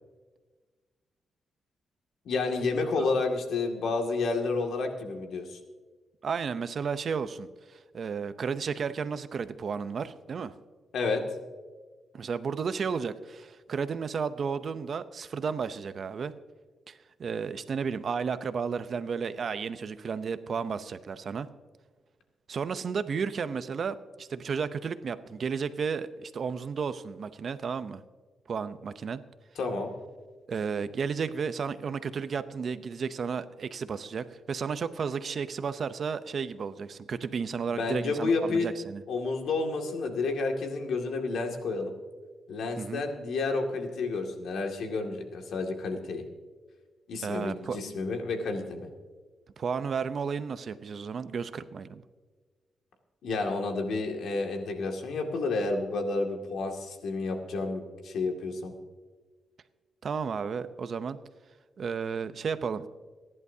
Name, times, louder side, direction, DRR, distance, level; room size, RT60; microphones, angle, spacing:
voice 1, 2.3-5.6 10.9-11.2 29.6-29.9 37.8-38.7 39.1-41.9 42.5-46.2 47.1-48.9 53.2-58.7, left 3 dB, 75° left, 3 dB, 2.2 m, -30 dB
voice 2, 6.2-10.5 12.1-16.3 16.9-21.5 22.5-28.0 28.5-29.2 30.5-39.0 42.8-43.0 47.2-47.8 49.6-52.0 60.0-61.2 61.8-62.8, right 6 dB, 50° right, 12 dB, 0.7 m, -33 dB
28.0 x 11.0 x 2.8 m, 1.4 s
cardioid pair, 135°, 0 cm